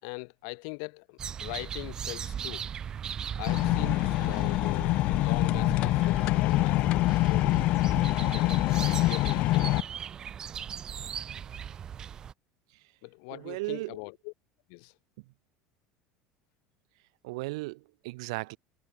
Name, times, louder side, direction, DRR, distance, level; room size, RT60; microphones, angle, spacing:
voice 1, 0.0-2.7 3.3-7.7 8.2-9.9 13.0-14.3 14.7-14.9, left 40 dB or more, 65° left, 2.6 m, -41 dB
sound 1, 1.2-12.3, right 8 dB, 25° right, 0.8 m, -38 dB
sound 2, 3.5-9.8, left 18 dB, 45° left, 0.8 m, -25 dB
voice 2, 13.3-14.0 17.2-18.6, right 23 dB, 85° right, 1.1 m, -36 dB
cardioid pair, 165°, 3 cm